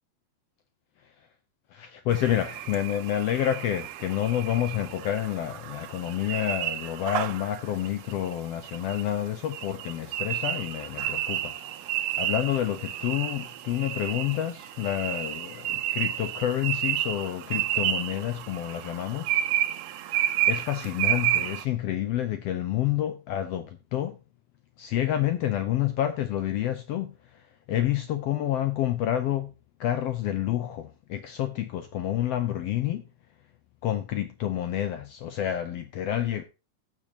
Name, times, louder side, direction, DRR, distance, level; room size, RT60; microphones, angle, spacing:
voice 1, 1.7-19.3 20.5-24.2 24.8-29.5 29.8-33.1 33.8-36.4, left 12 dB, 75° left, 1.5 m, -29 dB
sound 1, 2.1-21.6, right 12 dB, 75° right, 1.7 m, -31 dB
17.0 x 6.2 x 2.9 m
omnidirectional pair, 3.5 m